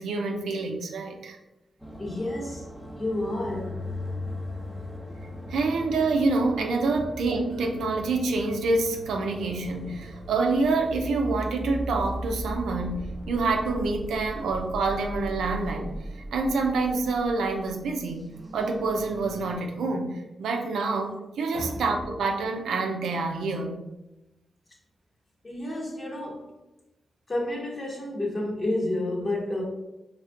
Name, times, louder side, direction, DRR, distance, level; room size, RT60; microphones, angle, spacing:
voice 1, 0.0-1.4 5.5-18.2 18.5-23.8, right 3 dB, 80° right, 3 dB, 0.5 m, -27 dB
sound 1, 1.8-19.6, equal, 5° left, 0.8 m, -38 dB
voice 2, 2.0-2.6 3.0-3.8 6.9-7.0 21.5-21.8 25.4-26.5 27.3-29.6, left 1 dB, 40° left, -2 dB, 1.3 m, -30 dB
4.3 x 3.3 x 2.5 m, 0.95 s
supercardioid pair, 45°, 0 cm